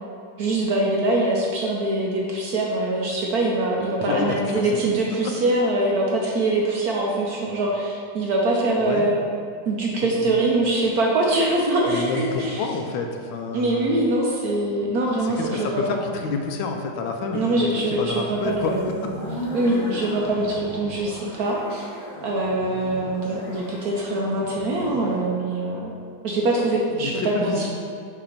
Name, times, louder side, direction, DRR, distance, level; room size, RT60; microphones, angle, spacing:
voice 1, 0.4-9.1 9.7-12.6 13.5-16.0 17.3-19.0 19.5-21.9 22.2-25.9 26.2-27.7, right 2 dB, 65° right, -2 dB, 1.0 m, -23 dB
voice 2, 4.0-4.7 8.8-9.1 10.0-10.5 11.9-13.9 15.2-19.1 26.7-27.7, left 4 dB, 85° left, 4 dB, 1.4 m, -29 dB
sound 1, 18.4-25.2, equal, 65° left, 0.4 m, -36 dB
6.7 x 2.9 x 5.1 m, 2.3 s
omnidirectional pair, 2.1 m